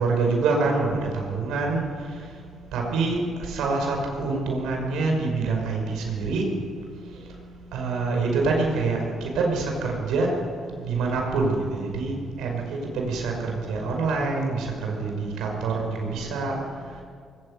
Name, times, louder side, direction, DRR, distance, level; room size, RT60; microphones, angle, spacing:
voice 1, 0.0-2.3 2.7-6.6 7.1-7.2 7.7-16.6, right 3 dB, 85° right, 1 dB, 5.6 m, -26 dB
20.5 x 17.5 x 8.2 m, 2.1 s
cardioid pair, 90°, 0 cm